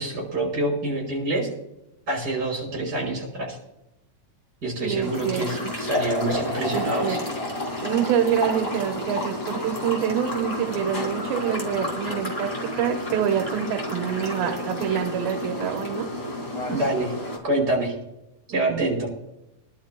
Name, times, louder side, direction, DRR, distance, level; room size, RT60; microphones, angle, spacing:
voice 1, 0.0-1.5 2.1-3.6 4.6-7.2 16.7-17.1 17.4-17.9 18.5-19.1, right 2 dB, 25° right, -1 dB, 5.9 m, -26 dB
voice 2, 4.8-5.7 6.7-7.2 7.8-16.1 18.5-18.8, right 9 dB, 90° right, 3 dB, 2.9 m, -26 dB
sound 1, 5.0-17.4, left 1 dB, 20° left, 2.5 m, -30 dB
25.0 x 11.5 x 2.3 m, 0.90 s
omnidirectional pair, 4.1 m